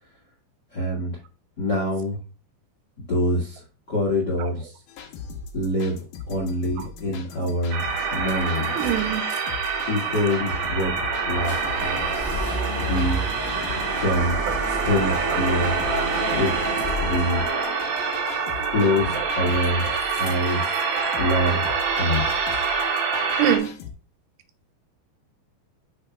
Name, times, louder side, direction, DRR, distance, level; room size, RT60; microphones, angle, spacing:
voice 1, 0.7-1.2 1.6-2.2 3.0-3.6 3.9-4.7 5.5-5.9 6.3-7.8 8.1-8.7 9.8-10.9 11.3-12.0 12.8-13.2 14.0-14.4 14.8-15.7 16.3-16.5 17.0-17.4 18.7-19.8 20.2-20.6 21.2-21.6 21.9-22.3, left 1 dB, 65° left, 1.0 m, -25 dB
sound 1, 4.9-23.9, left 4 dB, 85° left, 1.8 m, -39 dB
sound 2, 7.4-7.5 7.9-9.4 9.7-17.5 19.0-19.7 19.9-20.9, equal, 20° left, 1.7 m, -34 dB
sound 3, 7.7-23.6, right 5 dB, 60° right, 1.9 m, -26 dB
voice 2, 8.7-9.3 14.5-14.6 15.3-15.5 17.5-17.6 18.9-19.4 19.8-20.0 22.4-22.5 23.4-23.7, right 10 dB, 80° right, 2.8 m, -26 dB
9.0 x 6.1 x 2.4 m
omnidirectional pair, 5.0 m